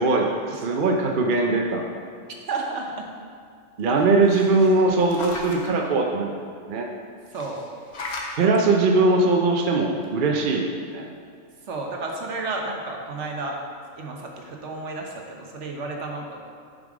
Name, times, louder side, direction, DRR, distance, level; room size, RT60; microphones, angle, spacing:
voice 1, 0.0-1.9 3.8-6.9 8.4-10.6 10.9-11.1, right 3 dB, 50° right, 1 dB, 0.8 m, -21 dB
voice 2, 2.5-3.1 7.3-7.6 11.7-13.6 14.0-16.4, right 3 dB, 65° right, 1 dB, 1.2 m, -32 dB
sound 1, 4.0-5.7 7.3-8.4 9.6-9.7 10.0-10.1, left 2 dB, 55° left, 1.2 m, -36 dB
7.2 x 5.3 x 4.9 m, 2.3 s
omnidirectional pair, 1.4 m